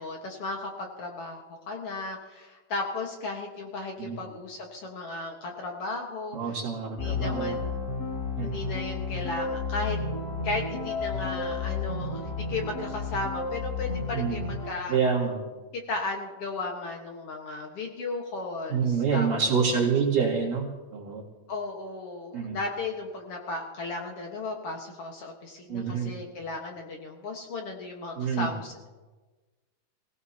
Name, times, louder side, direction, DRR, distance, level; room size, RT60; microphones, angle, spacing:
voice 1, 0.0-6.4 7.0-7.8 8.4-10.0 10.4-15.0 15.7-19.8 21.5-28.9, left 3 dB, 55° left, 1 dB, 1.8 m, -35 dB
voice 2, 6.3-7.6 8.4-8.6 14.1-14.5 14.9-15.4 18.7-20.7 20.9-21.2 22.3-22.6 25.7-26.1 28.2-28.5, right 6 dB, 65° right, -8 dB, 3.6 m, -27 dB
sound 1, 7.0-14.7, left 4 dB, 30° left, 2.4 m, -32 dB
23.5 x 17.0 x 2.8 m, 1.2 s
omnidirectional pair, 4.2 m